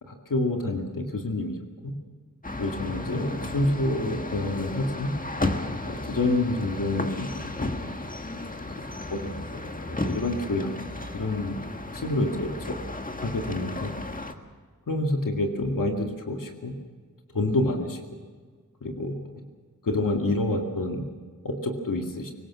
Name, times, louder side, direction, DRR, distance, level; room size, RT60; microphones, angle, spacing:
voice 1, 0.1-1.6 1.8-1.9 2.6-5.1 5.8-7.7 9.1-9.6 9.9-10.8 11.1-11.6 11.9-12.8 13.2-13.9 14.9-16.7 17.3-18.0 18.8-19.4 19.8-21.1 21.4-22.3, left 2 dB, 90° left, 3 dB, 2.2 m, -28 dB
sound 1, 2.4-14.3, left 2 dB, 25° left, 1.6 m, -34 dB
24.0 x 19.5 x 6.2 m, 1.5 s
wide cardioid pair, 95°, 32 cm